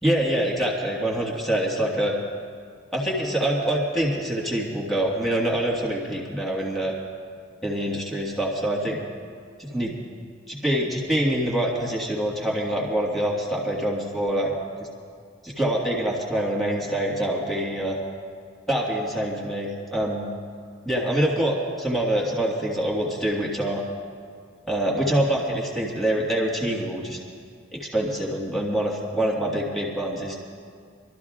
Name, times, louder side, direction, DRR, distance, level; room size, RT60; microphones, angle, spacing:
voice 1, 0.0-2.1 2.9-6.9 7.6-9.0 9.6-9.9 10.5-14.5 15.4-18.0 18.7-20.3 20.8-23.8 24.7-27.2 27.7-30.3, right 1 dB, ahead, -3 dB, 1.7 m, -25 dB
27.5 x 12.5 x 2.4 m, 2.1 s
head